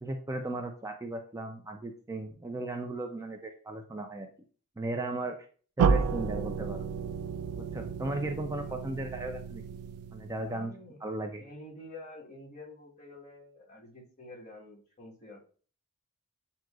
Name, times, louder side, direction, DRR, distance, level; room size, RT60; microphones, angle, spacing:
voice 1, 0.0-4.3 4.8-5.4 5.8-6.8 7.6-9.6 10.1-10.7 11.0-11.4, right 2 dB, 15° right, 4 dB, 0.4 m, -36 dB
sound 1, 5.8-10.6, right 5 dB, 80° right, 0.4 m, -31 dB
voice 2, 10.5-11.0 11.4-15.4, left 2 dB, 30° left, -2 dB, 1.3 m, -48 dB
7.5 x 2.8 x 2.4 m, 0.42 s
head